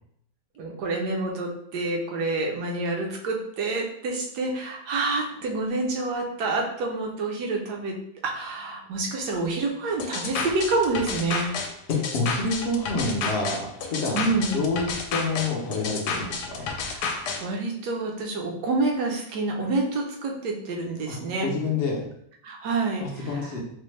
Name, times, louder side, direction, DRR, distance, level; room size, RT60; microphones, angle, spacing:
voice 1, 0.6-8.0 8.2-11.5 14.1-14.6 16.7-21.5 22.4-23.5, right 3 dB, 70° right, 0 dB, 1.2 m, -28 dB
sound 1, 10.0-17.4, left 5 dB, 75° left, 1.1 m, -31 dB
voice 2, 11.9-14.3 14.5-16.7 21.1-22.0 23.0-23.6, left 3 dB, 60° left, -1 dB, 0.6 m, -28 dB
4.2 x 2.1 x 3.1 m, 0.71 s
omnidirectional pair, 1.8 m